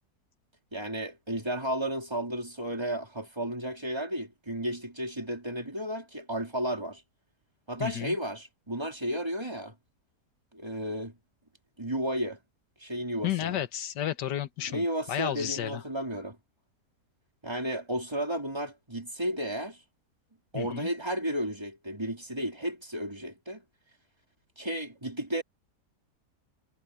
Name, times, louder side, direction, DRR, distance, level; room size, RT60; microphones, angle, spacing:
voice 1, 0.7-7.0 7.7-9.8 10.5-11.1 11.8-12.4 12.8-13.6 14.7-16.4 17.4-19.8 20.5-23.6 24.6-25.4, right 1 dB, 15° right, 3.7 m, -33 dB
voice 2, 7.8-8.2 13.2-15.8 20.5-20.9, left 11 dB, 85° left, 1.7 m, -32 dB
omnidirectional pair, 1.8 m